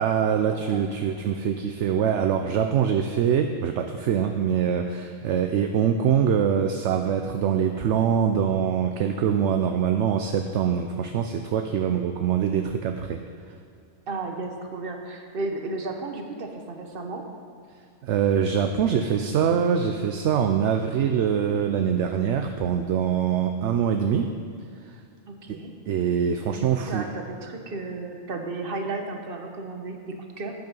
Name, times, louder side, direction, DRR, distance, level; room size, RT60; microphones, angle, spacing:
voice 1, 0.0-13.2 18.0-24.3 24.8-25.0 25.5-27.1, right 8 dB, 65° right, 6 dB, 0.8 m, -24 dB
voice 2, 0.5-1.1 5.2-5.3 14.1-17.2 25.3-25.7 26.5-30.5, right 3 dB, 45° right, 4 dB, 1.3 m, -34 dB
11.5 x 9.6 x 5.3 m, 2.3 s
omnidirectional pair, 1.4 m